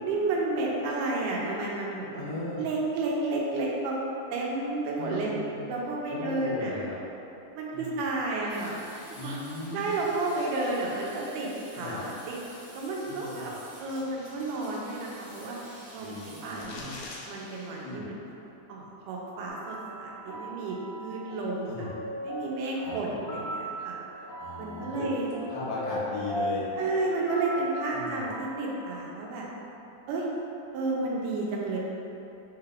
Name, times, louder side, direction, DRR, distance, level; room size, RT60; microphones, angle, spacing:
voice 1, 0.0-2.2 2.6-4.0 4.3-5.3 5.7-6.7 7.5-8.7 9.2-9.4 9.7-12.4 12.7-13.5 13.8-15.6 15.9-16.2 16.4-18.3 18.7-21.9 22.2-24.0 24.6-25.3 26.8-29.5 30.1-30.3 30.7-31.8, right 2 dB, 85° right, -3 dB, 2.2 m, -31 dB
voice 2, 2.1-2.6 4.9-5.7 6.1-7.0 7.7-8.0 9.1-10.0 11.7-12.0 13.1-13.5 16.0-17.0 17.8-18.1 21.7-21.9 22.8-23.3 24.4-25.1 25.5-26.7 27.9-28.2, left 2 dB, 70° left, -8 dB, 2.1 m, -37 dB
sound 1, 8.5-17.9, right 1 dB, 60° right, 0.7 m, -50 dB
sound 2, 16.6-17.2, left 3 dB, 85° left, 1.5 m, -42 dB
sound 3, 19.5-29.0, equal, 55° left, 1.8 m, -38 dB
6.4 x 3.2 x 2.4 m, 2.8 s
omnidirectional pair, 3.7 m